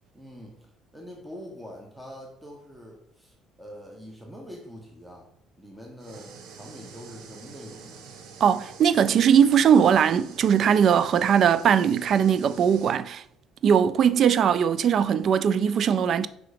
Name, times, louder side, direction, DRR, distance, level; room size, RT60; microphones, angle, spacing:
voice 1, 0.1-0.7 0.9-8.1, equal, 10° right, 1.1 m, -44 dB
sound 1, 6.0-13.0, right 5 dB, 75° right, 0.8 m, -47 dB
voice 2, 8.4-13.2 13.6-16.3, right 8 dB, 55° right, 0.3 m, -20 dB
4.9 x 3.9 x 5.0 m
supercardioid pair, 90°, 0 cm